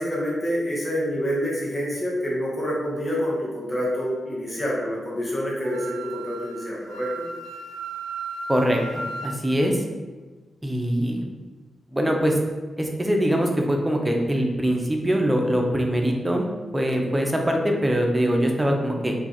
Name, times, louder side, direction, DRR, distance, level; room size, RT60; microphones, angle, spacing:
voice 1, 0.0-7.2, equal, 25° left, -5 dB, 0.9 m, -27 dB
Wind instrument woodwind instrument, 5.6-9.4, right 3 dB, 90° right, 0.3 m, -35 dB
voice 2, 8.5-9.8 10.6-11.2 11.9-12.4 12.8-16.4 16.7-19.1, equal, 15° right, 2 dB, 0.6 m, -23 dB
2.4 x 2.3 x 4.0 m, 1.3 s
supercardioid pair, 45°, 0 cm